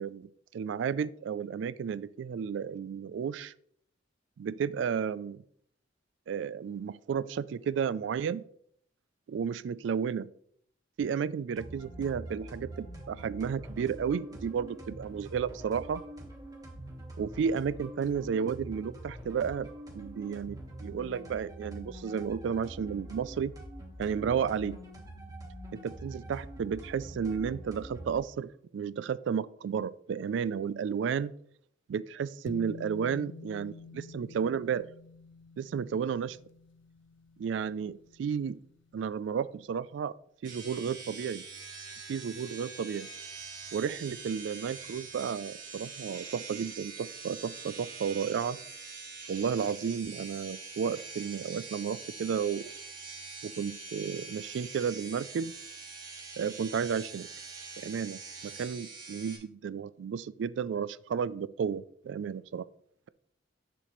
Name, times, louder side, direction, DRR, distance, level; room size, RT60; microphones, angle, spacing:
voice 1, 0.0-3.5 4.4-5.4 6.3-8.4 9.3-10.3 11.0-16.0 17.2-19.7 19.9-23.5 24.0-24.8 25.7-31.3 31.9-34.8 35.6-36.4 37.4-38.6 38.9-40.1 40.4-41.4 42.1-43.1 43.7-48.6 49.3-52.6 53.4-55.5 56.4-57.3 57.8-62.6, right 7 dB, 75° right, 17 dB, 0.3 m, -32 dB
sound 1, 11.6-28.2, right 1 dB, 20° right, 1.3 m, -45 dB
sound 2, 32.5-39.0, left 3 dB, 75° left, 0.5 m, -49 dB
sound 3, 40.4-59.4, right 4 dB, 45° right, 1.7 m, -44 dB
7.5 x 6.7 x 3.1 m, 0.65 s
head